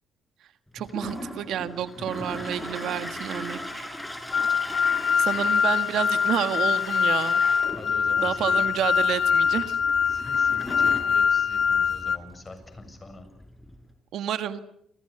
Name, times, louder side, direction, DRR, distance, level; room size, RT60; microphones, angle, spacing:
voice 1, 0.7-3.9 5.2-7.4 8.2-9.8 14.1-14.6, right 10 dB, 75° right, 10 dB, 1.6 m, -29 dB
Toilet flush, 0.8-13.9, left 1 dB, 5° left, 5.8 m, -39 dB
voice 2, 2.0-2.5 5.3-5.5 7.8-8.6 10.1-13.3, left 2 dB, 25° left, 8 dB, 7.2 m, -43 dB
sound 1, 4.3-12.2, left 6 dB, 50° left, 1.2 m, -23 dB
29.0 x 26.5 x 6.8 m, 0.73 s
cardioid pair, 90°, 0 cm